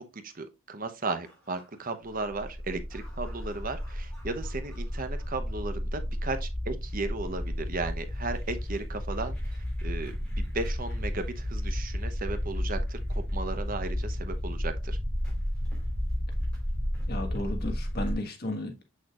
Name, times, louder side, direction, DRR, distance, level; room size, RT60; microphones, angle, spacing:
voice 1, 0.0-15.0, right 3 dB, 40° right, 0.8 m, -35 dB
sound 1, 1.2-18.1, equal, 5° left, 3.7 m, -32 dB
voice 2, 17.1-18.8, left 1 dB, 50° left, 1.5 m, -34 dB
6.5 x 6.4 x 2.4 m
head